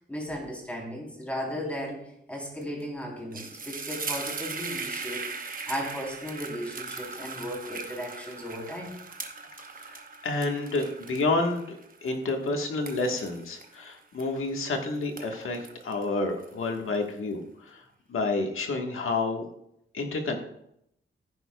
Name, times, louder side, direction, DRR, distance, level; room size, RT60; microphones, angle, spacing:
voice 1, 0.1-2.0 2.3-5.3 5.7-8.9, equal, 5° left, -2 dB, 3.5 m, -35 dB
sound 1, 2.6-2.8 3.1-14.7 15.0-16.9, right 4 dB, 40° right, 1.0 m, -39 dB
voice 2, 9.8-17.8 18.1-19.4 19.9-20.4, left 3 dB, 80° left, 2 dB, 1.5 m, -29 dB
15.0 x 9.7 x 2.3 m, 0.77 s
wide cardioid pair, 140°, 21 cm